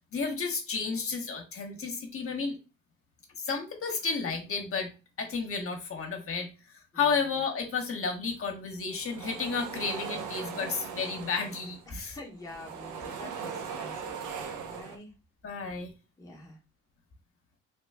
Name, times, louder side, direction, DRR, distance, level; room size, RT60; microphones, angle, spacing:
voice 1, 0.1-2.5 3.4-4.9 5.2-12.2 15.4-15.9, left 5 dB, 45° left, 3 dB, 0.9 m, -32 dB
sound 1, 8.8-12.0 12.3-15.0, right 6 dB, 75° right, 0.7 m, -39 dB
voice 2, 11.9-15.1 16.2-16.6, left 2 dB, 10° left, 0 dB, 0.8 m, -46 dB
3.0 x 2.2 x 3.3 m, 0.31 s
cardioid pair, 90°, 30 cm